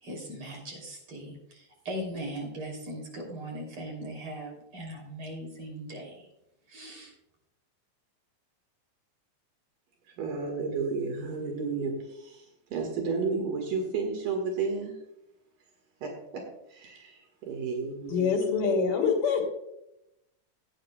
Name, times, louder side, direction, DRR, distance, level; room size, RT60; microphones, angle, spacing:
voice 1, 0.0-6.3 6.7-7.1, right 1 dB, 40° right, 0 dB, 3.9 m, -39 dB
voice 2, 10.1-15.0 16.0-16.4 16.7-18.3, right 4 dB, 85° right, 2 dB, 3.3 m, -32 dB
voice 3, 18.1-19.5, left 5 dB, 80° left, 1 dB, 4.1 m, -25 dB
17.0 x 9.4 x 2.3 m, 0.83 s
omnidirectional pair, 3.7 m